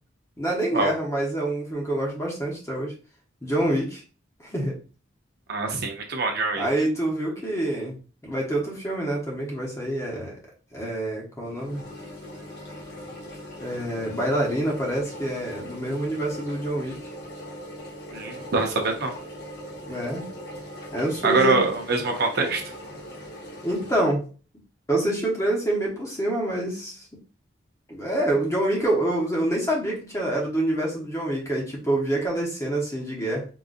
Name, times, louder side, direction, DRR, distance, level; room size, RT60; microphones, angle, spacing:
voice 1, 0.4-2.9 3.4-4.0 4.4-4.7 6.6-8.0 8.2-10.4 10.7-11.8 13.6-17.0 19.8-20.3 20.9-21.7 23.6-24.2 24.9-27.1 27.9-33.5, right 1 dB, 15° left, -2 dB, 0.9 m, -26 dB
voice 2, 5.5-6.7 18.1-19.1 21.2-22.6, right 3 dB, 55° right, 2 dB, 0.6 m, -24 dB
sound 1, 11.4-24.0, equal, 55° left, 0.9 m, -40 dB
3.8 x 2.5 x 2.5 m, 0.36 s
head